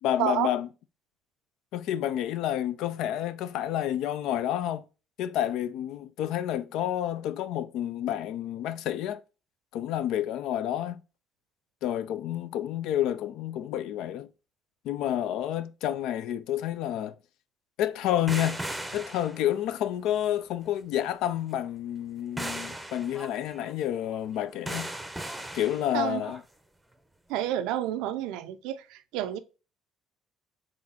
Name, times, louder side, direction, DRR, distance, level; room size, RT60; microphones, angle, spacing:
voice 1, 0.0-0.7 1.7-4.8 5.2-9.2 9.7-11.0 11.8-14.3 14.8-17.2 17.8-18.6 18.9-24.9 25.5-26.4, left 11 dB, 70° left, 0.3 m, -29 dB
sound 1, 18.3-19.8 22.4-26.4 27.4-27.5, right 1 dB, 5° right, 0.7 m, -38 dB
voice 2, 27.3-29.4, right 12 dB, 75° right, 0.4 m, -29 dB
4.0 x 3.6 x 2.7 m
hypercardioid pair, 65°, 0 cm